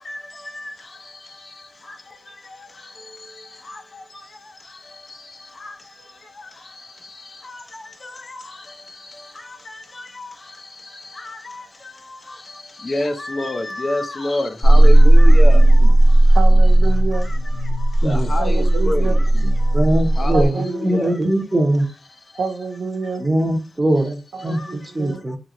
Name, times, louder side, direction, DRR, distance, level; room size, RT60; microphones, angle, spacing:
voice 1, 12.8-15.6 18.0-19.1 20.2-21.1, left 2 dB, 30° left, 0.5 m, -25 dB
sound 1, 14.6-20.5, right 1 dB, 85° left, 1.1 m, -13 dB
voice 2, 16.3-17.6 18.4-19.5 20.3-21.3 22.4-23.2 24.3-25.2, right 4 dB, 90° right, 0.6 m, -29 dB
voice 3, 19.7-20.5 20.8-21.9 23.2-24.2 24.4-25.4, right 1 dB, 15° right, 0.7 m, -20 dB
2.9 x 2.8 x 2.5 m
wide cardioid pair, 160°, 0 cm